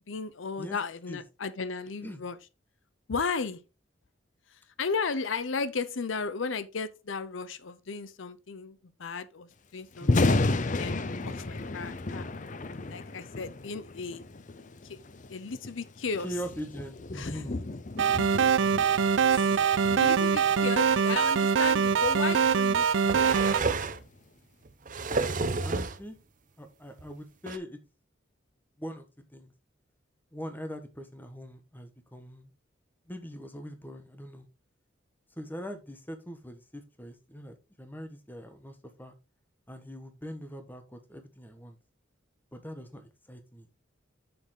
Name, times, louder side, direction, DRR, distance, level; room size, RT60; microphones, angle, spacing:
voice 1, 0.1-2.4 3.1-3.6 4.5-10.5 10.8-12.2 12.9-14.3 14.8-15.0 15.3-16.3 17.1-17.4 19.3-23.4, left 5 dB, 75° left, 0.7 m, -35 dB
Thunder, 9.9-24.1, left 2 dB, 40° left, 0.6 m, -33 dB
voice 2, 10.0-10.4 16.2-17.6 25.6-26.2 26.6-27.8 28.8-29.5 30.3-32.5 33.1-34.5 35.3-39.1 39.7-41.8 42.5-43.7, equal, 10° left, 1.3 m, -42 dB
sound 1, 18.0-23.6, right 6 dB, 70° right, 0.4 m, -23 dB
sound 2, 21.6-21.7 22.7-24.1 24.7-26.0 27.0-27.1 27.5-27.6, right 3 dB, 40° right, 0.8 m, -30 dB
7.1 x 6.9 x 3.8 m
head